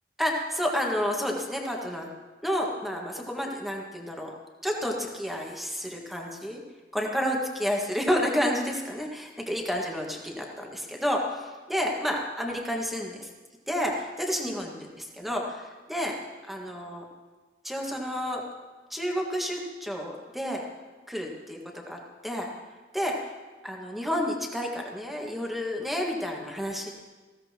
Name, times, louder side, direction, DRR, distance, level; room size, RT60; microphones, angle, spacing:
voice 1, 0.2-2.1 2.4-4.3 4.6-6.6 6.9-13.3 13.7-16.2 16.5-17.0 17.6-18.4 18.9-20.6 21.1-22.5 22.9-23.2 23.6-26.9, equal, ahead, 0 dB, 1.7 m, -30 dB
20.0 x 15.5 x 3.0 m, 1.3 s
head